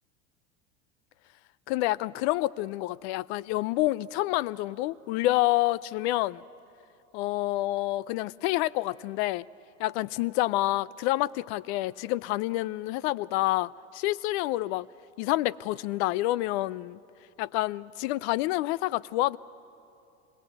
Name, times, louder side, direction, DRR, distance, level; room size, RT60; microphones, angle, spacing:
voice 1, 1.7-6.4 7.1-9.5 9.8-14.9 15.2-17.0 17.4-19.4, left 17 dB, 60° left, 0.6 m, -28 dB
26.0 x 21.0 x 8.1 m
hypercardioid pair, 95°, 37 cm